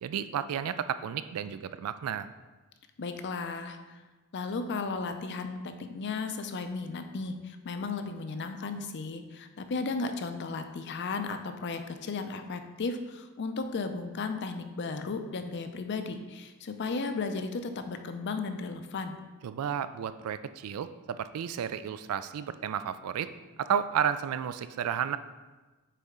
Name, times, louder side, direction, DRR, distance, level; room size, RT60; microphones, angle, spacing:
voice 1, 0.0-2.3 19.4-23.3 23.6-25.2, right 8 dB, 75° right, 13 dB, 0.3 m, -32 dB
voice 2, 3.0-4.0 4.3-19.2, left 4 dB, 50° left, 8 dB, 0.5 m, -35 dB
6.6 x 4.2 x 3.6 m, 1.2 s
head